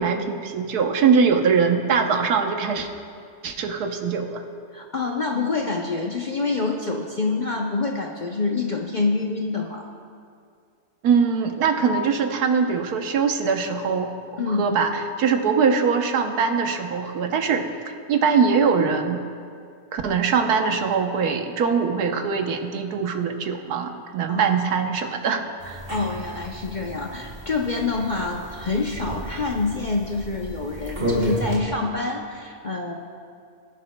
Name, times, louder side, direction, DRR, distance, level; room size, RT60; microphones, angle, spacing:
voice 1, 0.0-2.9 3.4-4.4 11.0-19.2 19.9-25.8, right 5 dB, 85° right, 5 dB, 1.4 m, -22 dB
voice 2, 4.7-9.9 14.4-14.8 24.3-24.5 25.9-32.9, left 3 dB, 45° left, 1 dB, 0.6 m, -26 dB
sound 1, 25.6-31.6, right 1 dB, 35° right, 2.4 m, -32 dB
21.5 x 11.0 x 2.2 m, 2.3 s
omnidirectional pair, 1.6 m